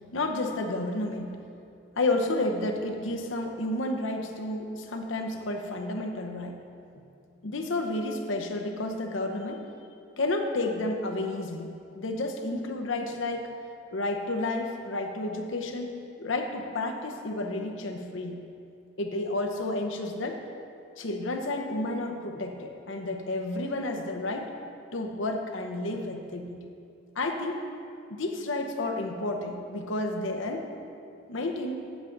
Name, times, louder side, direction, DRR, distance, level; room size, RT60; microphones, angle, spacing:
voice 1, 0.1-1.4 2.0-6.6 7.4-9.6 10.2-13.5 13.9-15.9 16.2-18.4 19.0-20.4 21.0-24.5 24.9-26.6 27.2-27.6 28.1-30.7 31.3-31.8, left 2 dB, 80° left, 3 dB, 0.8 m, -31 dB
8.6 x 8.1 x 3.9 m, 2.5 s
head